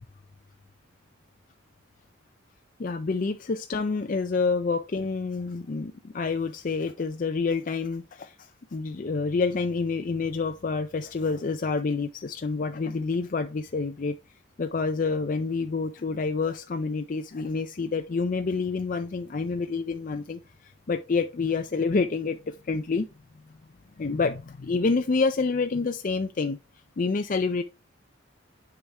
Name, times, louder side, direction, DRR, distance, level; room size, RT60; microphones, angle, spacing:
voice 1, 2.8-14.2 14.6-23.1 24.0-26.6 27.0-27.6, left 4 dB, 40° left, 0.4 m, -28 dB
7.1 x 5.0 x 3.4 m
head